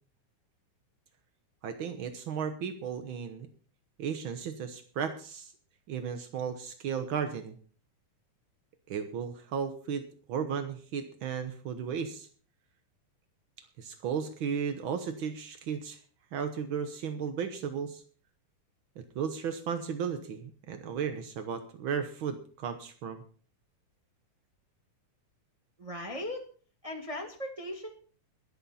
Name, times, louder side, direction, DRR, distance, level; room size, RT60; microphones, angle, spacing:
voice 1, 1.6-3.5 4.0-5.5 5.9-7.6 8.9-10.0 10.3-12.3 13.8-16.0 16.3-18.0 19.0-23.2, right 7 dB, 80° right, 8 dB, 1.1 m, -35 dB
voice 2, 25.8-26.5 26.8-27.9, left 1 dB, 25° right, 2 dB, 0.7 m, -38 dB
22.0 x 8.0 x 4.2 m, 0.42 s
omnidirectional pair, 3.8 m